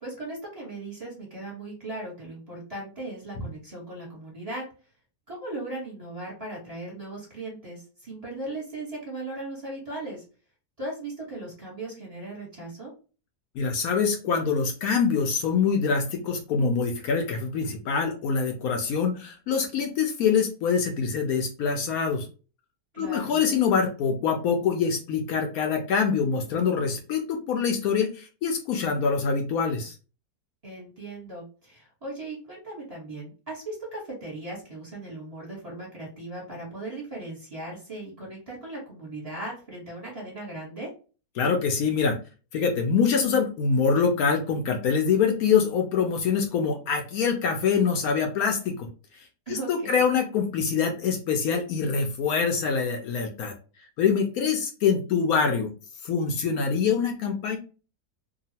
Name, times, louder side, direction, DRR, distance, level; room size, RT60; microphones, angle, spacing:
voice 1, 0.0-4.6 5.3-10.2 10.8-12.9 22.9-23.4 30.6-40.9 49.5-50.0, right 2 dB, 25° right, -5 dB, 1.1 m, -38 dB
voice 2, 13.6-22.2 23.0-29.9 41.4-42.2 42.5-48.7 49.5-53.5 54.0-55.7 56.0-57.6, left 6 dB, 75° left, 3 dB, 1.0 m, -25 dB
2.8 x 2.3 x 2.7 m, 0.35 s
omnidirectional pair, 1.7 m